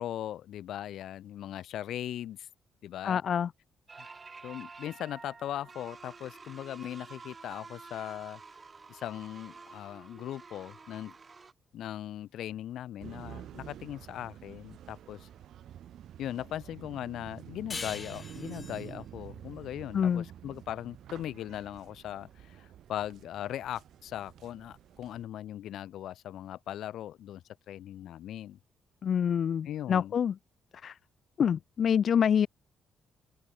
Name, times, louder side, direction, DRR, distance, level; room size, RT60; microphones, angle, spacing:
voice 1, 0.0-2.5 2.8-3.2 4.4-8.4 8.9-11.2 11.7-15.3 16.2-28.6 29.6-30.1, left 12 dB, 75° left, 3.3 m, -39 dB
voice 2, 3.0-3.5 19.9-20.2 29.0-30.3 30.8-31.0 31.4-32.5, left 8 dB, 55° left, 0.4 m, -26 dB
sound 1, 3.9-11.5, right 4 dB, 30° right, 7.1 m, -49 dB
sound 2, 13.0-25.2, right 11 dB, 70° right, 5.8 m, -49 dB
sound 3, 17.7-20.9, left 4 dB, 30° left, 6.8 m, -43 dB
open air
cardioid pair, 90°, 0 cm